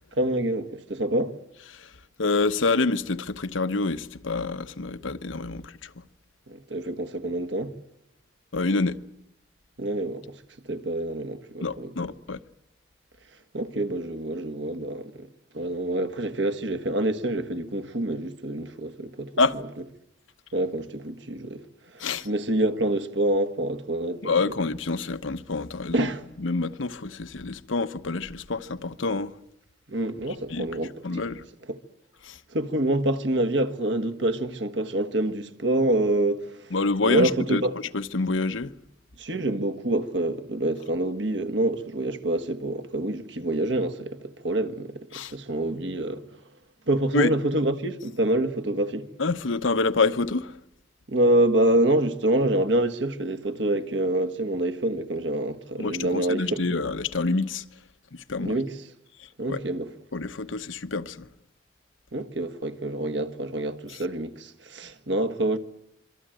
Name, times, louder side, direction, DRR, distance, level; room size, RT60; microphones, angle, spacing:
voice 1, 0.1-1.4 6.5-7.7 9.8-10.3 10.7-11.9 13.5-15.3 15.5-19.3 20.5-21.7 21.9-24.3 25.9-26.2 29.9-31.2 31.7-31.8 32.5-36.7 37.0-37.7 39.2-46.3 46.9-49.1 51.1-56.6 58.4-58.8 59.4-59.9 62.1-65.6, right 1 dB, 70° right, 1.6 m, -26 dB
voice 2, 2.2-5.9 8.5-9.0 11.6-12.4 19.4-19.6 22.0-22.3 24.2-26.1 26.4-29.3 30.5-30.7 31.0-31.5 32.2-32.4 36.7-37.6 37.9-38.7 45.1-45.3 47.1-47.4 49.2-50.6 55.8-57.6 58.1-58.5 59.2-59.6 60.1-61.3 63.9-64.0, left 3 dB, 90° left, 1.0 m, -27 dB
26.0 x 23.5 x 9.1 m
head